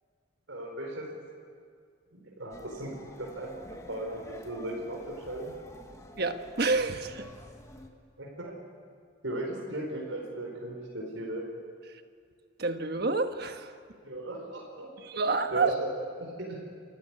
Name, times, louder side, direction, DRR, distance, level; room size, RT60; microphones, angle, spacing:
voice 1, 0.5-1.1 2.1-5.5 8.2-8.5 9.2-11.4 14.0-15.2 15.5-15.9 16.2-16.6, right 1 dB, 80° right, -2 dB, 4.7 m, -37 dB
sound 1, 2.5-7.9, left 1 dB, 15° left, 1.5 m, -49 dB
voice 2, 6.2-7.3 12.6-13.7 15.0-15.7, right 3 dB, 55° right, 7 dB, 1.4 m, -28 dB
28.5 x 14.5 x 9.8 m, 2.1 s
head